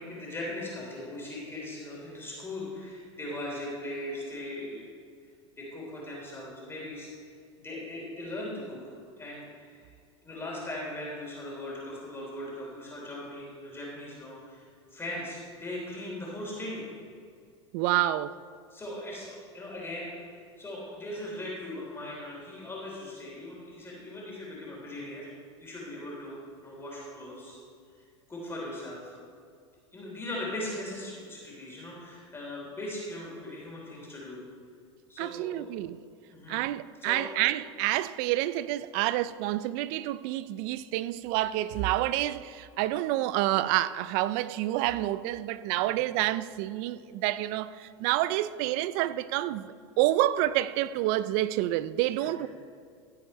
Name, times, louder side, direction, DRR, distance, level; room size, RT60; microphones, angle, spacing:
voice 1, 0.0-4.9 5.6-7.1 7.6-8.8 9.2-9.9 10.2-14.6 14.9-16.8 18.7-20.2 20.6-25.3 25.6-27.6 28.3-29.1 29.9-34.4 35.1-35.7 36.3-36.6 37.0-37.3 45.8-45.9 52.2-52.5, left 1 dB, 15° left, 3.3 m, -39 dB
voice 2, 17.7-18.4 35.2-36.0 36.5-52.5, right 15 dB, 55° right, 0.5 m, -28 dB
16.5 x 7.8 x 4.2 m
hypercardioid pair, 100°, 16 cm